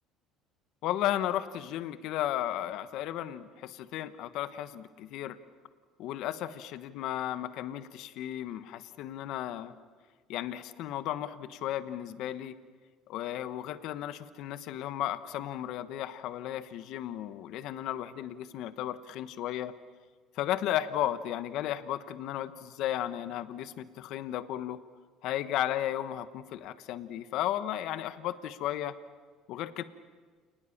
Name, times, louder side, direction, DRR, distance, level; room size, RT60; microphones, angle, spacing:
voice 1, 0.8-5.4 6.0-9.7 10.3-12.5 13.1-19.7 20.3-24.8 25.2-29.0 29.5-29.8, left 12 dB, 65° left, 13 dB, 1.2 m, -34 dB
29.0 x 20.0 x 7.3 m, 1.5 s
cardioid pair, 130°, 0 cm